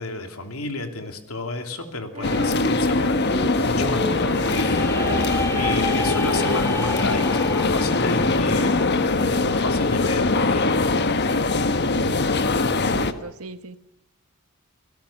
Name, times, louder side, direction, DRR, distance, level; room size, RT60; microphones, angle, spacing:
voice 1, 0.0-5.3 5.5-8.9 9.2-11.0, left 2 dB, 75° left, 6 dB, 2.9 m, -31 dB
Female singing, 2.1-8.6, right 1 dB, 30° right, 3.0 m, -36 dB
sound 1, 2.2-13.1, left 3 dB, 50° left, 1.3 m, -22 dB
sound 2, 4.2-10.0, left 2 dB, 15° left, 1.4 m, -32 dB
voice 2, 12.9-13.8, right 3 dB, 75° right, 11 dB, 1.4 m, -38 dB
29.5 x 17.5 x 7.2 m, 0.82 s
head